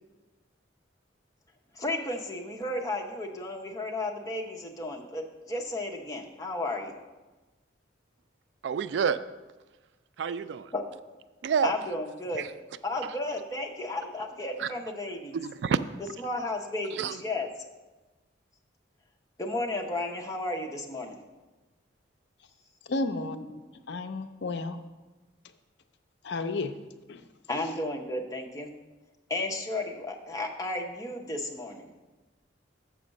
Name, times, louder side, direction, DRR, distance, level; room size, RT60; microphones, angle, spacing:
voice 1, 1.7-6.9 10.7-10.8 11.6-12.5 12.8-15.4 16.2-17.5 19.4-21.2 27.5-28.7 29.3-31.9, left 2 dB, 20° left, 1 dB, 0.7 m, -33 dB
voice 2, 8.6-9.2 10.2-10.7 11.4-11.7 14.6-14.7 15.3-15.8 17.0-17.2, right 6 dB, 70° right, 14 dB, 0.3 m, -27 dB
voice 3, 22.9-23.6 23.9-24.8 26.2-26.7 27.1-27.2, left 3 dB, 65° left, 8 dB, 0.5 m, -32 dB
7.0 x 5.0 x 6.4 m, 1.2 s
head